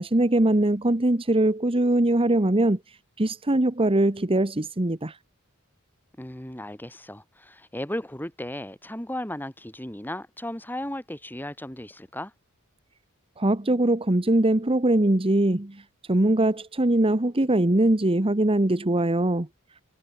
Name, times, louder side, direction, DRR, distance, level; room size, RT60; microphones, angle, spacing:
voice 1, 0.0-2.8 3.2-5.2 13.4-15.8 16.1-19.5, right 1 dB, 25° right, 1.2 m, -22 dB
voice 2, 6.2-12.3, left 1 dB, 10° left, 4.7 m, -35 dB
head